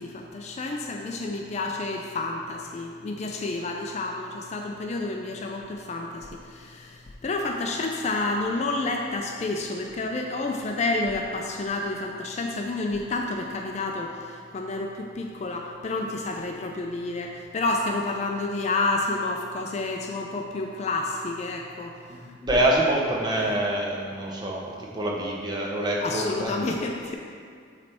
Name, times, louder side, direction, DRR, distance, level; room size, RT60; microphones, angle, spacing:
voice 1, 0.0-21.9 22.2-22.4 23.4-23.6 26.0-27.2, left 2 dB, 35° left, 2 dB, 0.3 m, -30 dB
voice 2, 22.1-24.6 24.9-26.6, right 1 dB, 20° right, -2 dB, 0.7 m, -26 dB
7.0 x 3.3 x 4.2 m, 2.2 s
head